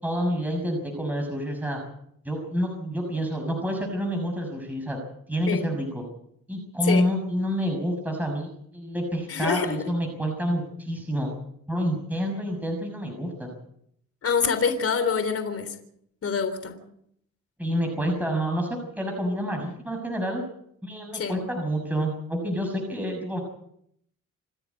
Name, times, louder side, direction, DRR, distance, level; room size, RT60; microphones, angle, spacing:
voice 1, 0.0-1.8 2.2-5.0 5.3-6.0 6.5-11.3 11.7-13.5 17.6-20.4 20.8-23.4, equal, 5° right, 2 dB, 6.2 m, -28 dB
voice 2, 9.3-9.8 14.2-15.8 16.2-16.8 21.1-21.3, left 6 dB, 50° left, 9 dB, 3.6 m, -26 dB
28.0 x 10.0 x 9.5 m, 0.72 s
cardioid pair, 90°, 30 cm